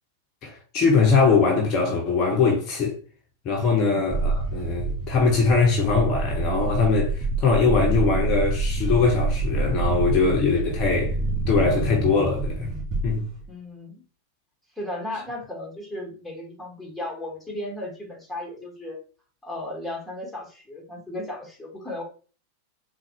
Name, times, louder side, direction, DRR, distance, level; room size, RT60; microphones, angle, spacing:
voice 1, 0.4-3.0 3.4-11.2 11.5-12.7 13.0-13.3, left 4 dB, 35° left, 0.8 m, -21 dB
voice 2, 3.8-4.1 11.0-11.1 13.5-14.0 14.8-19.0 19.4-22.0, left 1 dB, 5° left, 1.2 m, -35 dB
sound 1, 4.1-13.5, right 3 dB, 30° right, 1.5 m, -27 dB
3.8 x 2.3 x 2.9 m
figure-of-eight pair, 90°, 0 cm